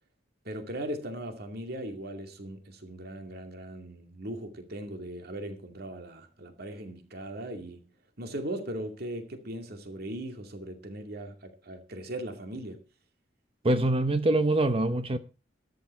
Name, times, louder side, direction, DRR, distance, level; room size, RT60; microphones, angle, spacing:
voice 1, 0.4-7.9 8.2-12.8, right 1 dB, 60° right, 2.5 m, -39 dB
voice 2, 13.6-15.2, right 2 dB, 30° right, 0.8 m, -24 dB
13.0 x 11.5 x 4.5 m
head